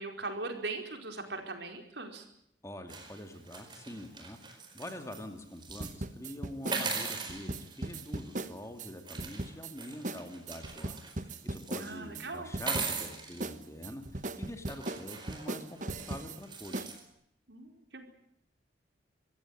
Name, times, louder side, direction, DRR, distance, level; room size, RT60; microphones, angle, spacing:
voice 1, 0.0-2.2 11.8-12.5 17.5-18.0, right 3 dB, 75° right, 5 dB, 4.8 m, -40 dB
voice 2, 2.6-11.0 11.4-17.0, left 1 dB, 15° left, 6 dB, 2.7 m, -45 dB
sound 1, 2.9-5.2 5.6-5.9 6.6-8.4 9.0-11.9 12.5-13.4 14.1-14.2 14.7-17.0, right 4 dB, 25° right, 4.7 m, -40 dB
sound 2, 5.8-8.9 9.2-9.7 10.0-10.2 10.5-12.3 12.5-13.1 13.4-16.4 16.7-16.9, right 2 dB, 45° right, 1.3 m, -38 dB
25.5 x 15.5 x 10.0 m, 0.75 s
head